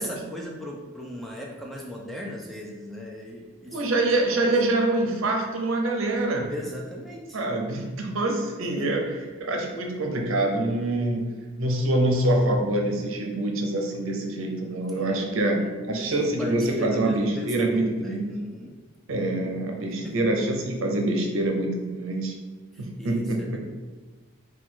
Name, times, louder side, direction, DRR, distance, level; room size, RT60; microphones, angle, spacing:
voice 1, 0.0-3.8 4.3-4.6 6.5-7.4 8.6-9.0 14.9-15.3 15.6-15.7 15.9-18.7 20.0-20.2 22.7-23.6, left 1 dB, ahead, -2 dB, 0.4 m, -37 dB
voice 2, 3.7-6.5 7.3-9.0 9.4-11.3 11.6-15.6 15.9-18.3 19.1-22.3 22.8-23.6, right 2 dB, 70° right, 2 dB, 0.7 m, -25 dB
4.7 x 2.3 x 3.8 m, 1.3 s
head